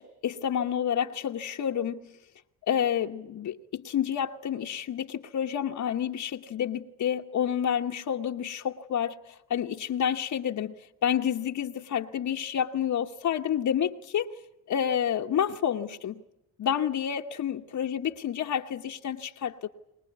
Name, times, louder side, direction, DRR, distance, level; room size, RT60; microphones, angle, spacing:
voice 1, 0.0-2.0 2.7-10.7 11.0-14.3 14.7-16.2 16.6-19.7, left 9 dB, 60° left, 1.2 m, -29 dB
23.5 x 20.0 x 9.5 m
cardioid pair, 85°, 34 cm